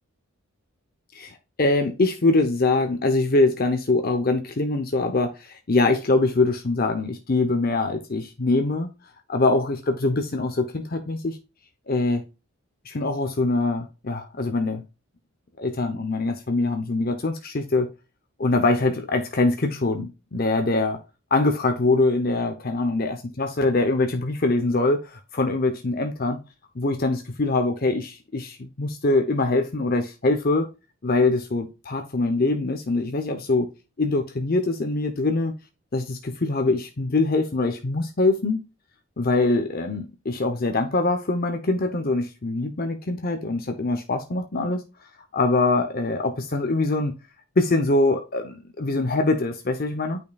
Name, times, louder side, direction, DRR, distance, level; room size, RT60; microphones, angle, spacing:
voice 1, 1.1-8.9 9.3-11.4 11.9-12.2 12.8-14.8 15.6-17.9 18.4-21.0 21.3-26.4 26.7-30.7 31.0-33.7 34.0-35.5 35.9-38.6 39.2-44.8 45.3-47.1 47.6-50.2, left 2 dB, 45° left, 0.8 m, -23 dB
9.2 x 5.3 x 2.3 m
head